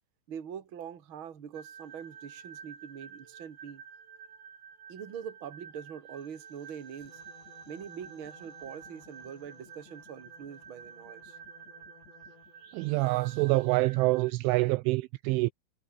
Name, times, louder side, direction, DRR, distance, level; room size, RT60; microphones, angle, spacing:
voice 1, 0.3-3.8 4.9-7.2 7.7-11.4, right 8 dB, 40° right, 2.0 m, -43 dB
sound 1, 1.5-14.3, right 7 dB, 65° right, 6.6 m, -50 dB
sound 2, 7.0-12.8, left 5 dB, 55° left, 8.5 m, -58 dB
voice 2, 12.7-15.5, right 22 dB, 85° right, 2.8 m, -26 dB
omnidirectional pair, 5.9 m